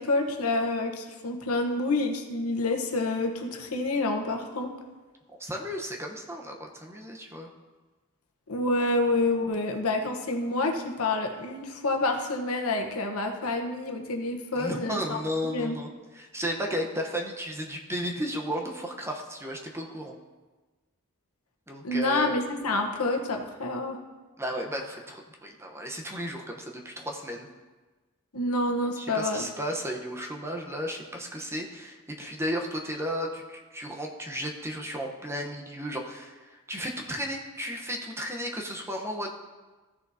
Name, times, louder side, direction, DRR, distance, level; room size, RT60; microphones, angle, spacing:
voice 1, 0.0-4.7 8.5-15.2 15.5-15.8 21.8-24.0 28.3-29.5, left 2 dB, 85° left, 3 dB, 1.1 m, -28 dB
voice 2, 5.4-7.5 14.5-20.1 21.7-22.4 24.4-27.5 29.0-39.3, equal, 10° right, 1 dB, 0.9 m, -34 dB
15.0 x 6.8 x 2.8 m, 1.3 s
head